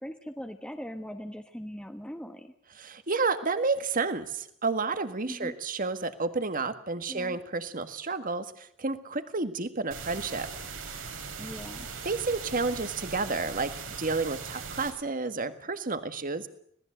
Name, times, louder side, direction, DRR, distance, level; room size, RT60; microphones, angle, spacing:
voice 1, 0.0-2.5 5.3-5.5 7.1-7.4 11.4-11.9, equal, 5° left, 5 dB, 1.2 m, -40 dB
voice 2, 2.8-10.5 10.9-11.1 12.0-16.5, right 3 dB, 45° right, 10 dB, 1.7 m, -31 dB
sound 1, 9.9-14.9, right 5 dB, 85° right, 5.1 m, -40 dB
26.0 x 18.5 x 7.9 m, 0.67 s
head